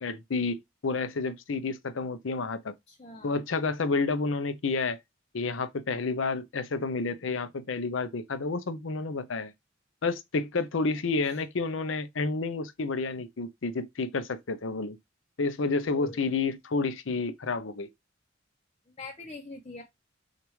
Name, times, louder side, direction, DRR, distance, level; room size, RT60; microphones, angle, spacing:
voice 1, 0.0-2.7 3.2-5.0 5.3-9.5 10.0-15.0 15.4-17.9, left 3 dB, 85° left, 0.6 m, -30 dB
voice 2, 2.9-3.4 11.2-11.3 15.9-16.3 18.9-19.8, left 3 dB, 30° left, 0.7 m, -44 dB
6.4 x 2.5 x 3.1 m
head